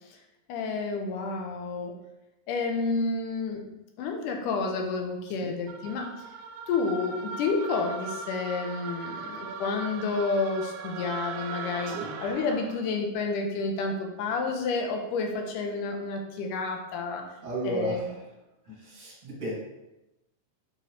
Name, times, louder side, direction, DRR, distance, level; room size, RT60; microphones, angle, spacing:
voice 1, 0.5-2.0 2.5-3.7 4.0-6.1 6.7-17.2 17.6-18.1, left 4 dB, 80° left, 2 dB, 2.3 m, -30 dB
sound 1, 5.7-12.9, right 5 dB, 80° right, 1.7 m, -39 dB
voice 2, 17.4-18.1 18.8-19.5, right 2 dB, 20° right, -5 dB, 1.5 m, -34 dB
5.7 x 5.6 x 3.1 m, 0.94 s
omnidirectional pair, 3.8 m